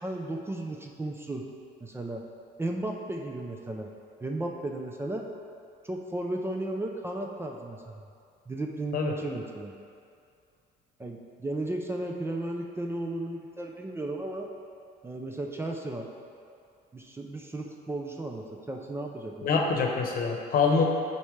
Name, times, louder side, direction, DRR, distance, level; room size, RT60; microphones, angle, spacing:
voice 1, 0.0-1.5 1.8-2.2 2.6-3.9 4.2-5.3 5.8-8.0 8.5-9.7 11.0-14.5 15.0-16.1 16.9-19.5, right 1 dB, 15° right, 1 dB, 0.5 m, -34 dB
voice 2, 19.4-20.8, left 4 dB, 60° left, 1 dB, 0.9 m, -25 dB
8.4 x 4.3 x 3.2 m, 2.4 s
cardioid pair, 110°, 17 cm